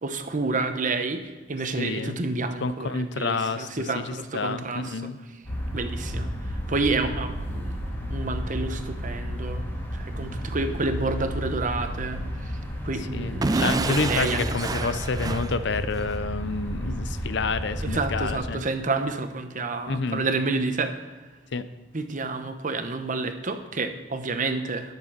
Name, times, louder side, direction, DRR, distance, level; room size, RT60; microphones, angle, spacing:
voice 1, 0.0-5.0 5.7-7.8 8.1-9.6 9.9-12.6 12.8-14.4 14.8-15.0 17.8-21.2 21.9-24.9, right 3 dB, 45° right, 8 dB, 1.0 m, -29 dB
voice 2, 1.8-2.2 2.6-3.7 3.9-5.2 13.1-18.6 19.9-20.2 21.5-21.7, left 4 dB, 65° left, 12 dB, 0.7 m, -29 dB
sound 1, 5.4-18.4, equal, 10° left, 2.1 m, -32 dB
Explosion / Shatter, 13.4-16.2, right 3 dB, 20° right, 0.4 m, -29 dB
11.5 x 6.8 x 6.0 m, 1.3 s
head